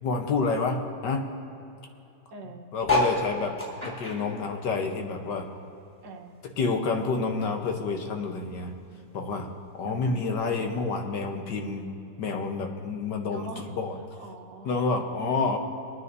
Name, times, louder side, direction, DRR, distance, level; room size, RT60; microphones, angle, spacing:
voice 1, 0.0-1.2 2.7-3.6 3.8-5.5 6.6-8.7 9.1-9.5 9.7-11.9 12.2-14.0 14.6-15.6, left 4 dB, 75° left, 3 dB, 1.7 m, -28 dB
voice 2, 2.3-2.7 4.1-4.4 6.0-6.3 9.8-10.3 10.6-10.7 13.3-13.8 14.2-15.6, right 3 dB, 90° right, 2 dB, 1.8 m, -44 dB
sound 1, 2.8-5.6 5.9-7.4 7.9-8.0 8.2-8.3 8.5-8.9 9.7-9.8, left 2 dB, 20° left, 3.5 m, -30 dB
25.0 x 9.6 x 2.7 m, 2.8 s
omnidirectional pair, 1.9 m